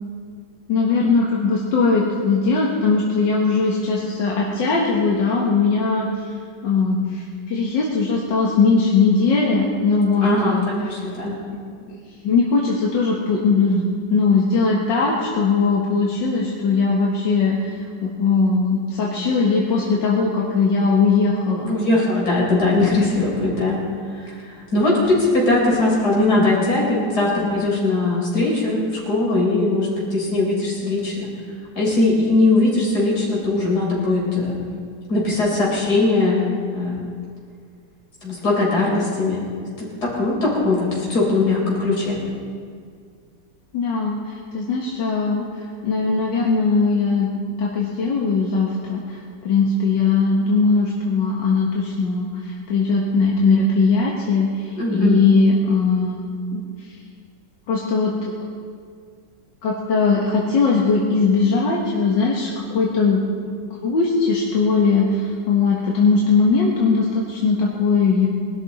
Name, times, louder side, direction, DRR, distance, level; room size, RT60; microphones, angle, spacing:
voice 1, 0.7-6.3 6.6-10.7 11.9-21.7 43.7-47.3 47.6-56.2 56.5-56.9 57.7-58.1 59.6-63.2 63.7-68.3, left 4 dB, 85° left, -3 dB, 2.1 m, -20 dB
voice 2, 10.2-11.4 21.6-23.9 24.1-31.3 31.7-34.6 35.1-37.0 38.2-39.4 39.8-42.2 54.8-55.2, left 2 dB, 60° left, -4 dB, 4.8 m, -20 dB
21.0 x 12.5 x 4.2 m, 2.1 s
omnidirectional pair, 1.9 m